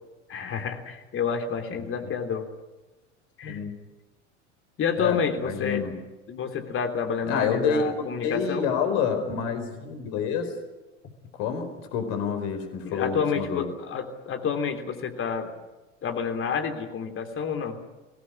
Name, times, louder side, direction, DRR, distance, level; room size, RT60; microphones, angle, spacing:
voice 1, 0.3-2.5 3.4-3.6 4.8-5.9 6.3-8.7 12.8-15.5 16.0-17.8, left 6 dB, 35° left, 6 dB, 3.4 m, -29 dB
voice 2, 5.4-5.9 7.3-10.5 11.3-13.6, left 6 dB, 55° left, 7 dB, 4.5 m, -28 dB
23.5 x 17.5 x 9.8 m, 1.1 s
figure-of-eight pair, 80°, 37 cm